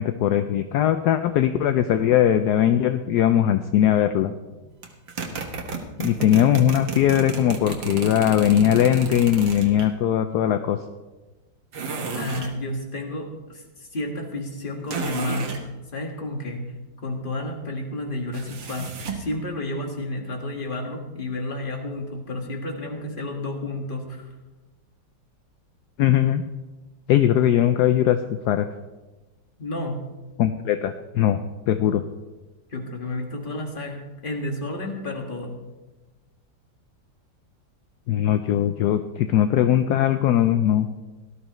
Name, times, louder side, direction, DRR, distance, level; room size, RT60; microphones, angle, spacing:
voice 1, 0.0-4.3 6.0-10.8 26.0-26.4 27.1-28.2 28.5-28.7 30.4-31.4 31.7-32.0 38.1-40.9, left 11 dB, 70° left, 9 dB, 1.0 m, -20 dB
sound 1, 4.8-9.9 11.7-12.6 14.9-15.6 18.3-19.3, right 5 dB, 80° right, 2.0 m, -32 dB
voice 2, 12.1-16.7 17.0-24.3 29.6-30.0 32.7-35.6, left 1 dB, 30° left, 2 dB, 1.8 m, -31 dB
17.5 x 13.0 x 3.1 m, 1.2 s
omnidirectional pair, 2.0 m